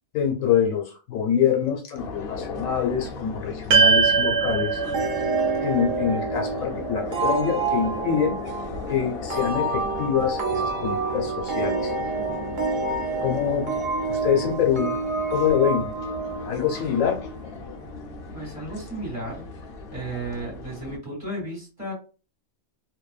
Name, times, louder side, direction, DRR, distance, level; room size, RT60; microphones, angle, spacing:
voice 1, 0.1-4.8 5.6-8.4 8.9-11.9 13.2-15.0 15.3-16.0 16.4-17.2, left 8 dB, 75° left, 2 dB, 1.0 m, -25 dB
sound 1, 2.0-21.0, left 4 dB, 55° left, 0.7 m, -37 dB
sound 2, 3.7-8.2, right 5 dB, 80° right, 1.1 m, -23 dB
sound 3, 4.9-17.3, right 3 dB, 45° right, 0.7 m, -28 dB
voice 2, 13.2-13.9 18.3-19.5 19.9-21.9, right 2 dB, 25° right, -5 dB, 1.4 m, -34 dB
2.6 x 2.2 x 2.3 m, 0.34 s
omnidirectional pair, 1.5 m